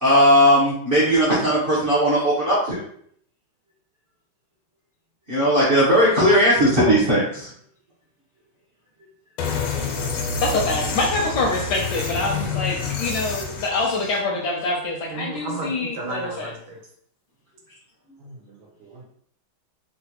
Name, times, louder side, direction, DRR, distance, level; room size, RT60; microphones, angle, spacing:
voice 1, 0.0-2.8 5.3-7.5, equal, 55° right, -8 dB, 0.6 m, -17 dB
sound 1, 9.4-14.2, left 4 dB, 90° left, 1.5 m, -28 dB
voice 2, 10.4-16.5, left 2 dB, 75° left, -1 dB, 1.0 m, -25 dB
voice 3, 15.1-16.8 18.2-18.4 18.8-19.0, right 3 dB, 80° right, -1 dB, 1.6 m, -34 dB
3.8 x 2.2 x 2.8 m, 0.64 s
omnidirectional pair, 2.2 m